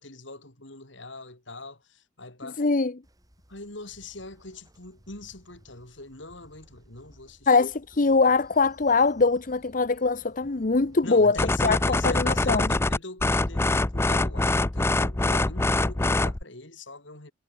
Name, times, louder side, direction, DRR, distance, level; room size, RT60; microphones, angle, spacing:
voice 1, 0.0-2.7 3.5-7.5 11.0-17.3, left 2 dB, 70° left, 5.4 m, -42 dB
voice 2, 2.6-2.9 7.5-11.4 11.6-11.8 12.0-12.7, left 4 dB, 45° left, 0.8 m, -22 dB
Train, 3.0-13.0, equal, 20° right, 5.7 m, -57 dB
sound 1, 11.4-16.4, left 2 dB, 15° left, 0.4 m, -24 dB
head